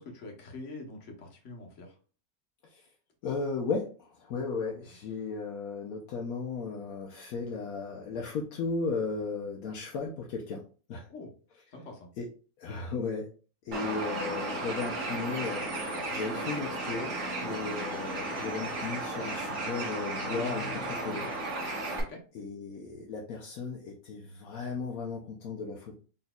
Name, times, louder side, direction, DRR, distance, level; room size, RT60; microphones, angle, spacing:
voice 1, 0.0-1.9 11.1-11.3 11.7-12.1 22.1-22.2, left 2 dB, 60° left, 1 dB, 1.4 m, -44 dB
voice 2, 3.2-3.9 4.2-10.6 10.9-11.1 12.2-12.3 12.6-13.3 13.6-21.3 22.3-26.0, left 4 dB, 75° left, 0 dB, 1.1 m, -35 dB
Bird, 13.7-22.0, right 2 dB, 55° right, 1.4 m, -34 dB
4.1 x 3.9 x 2.3 m, 0.38 s
omnidirectional pair, 1.5 m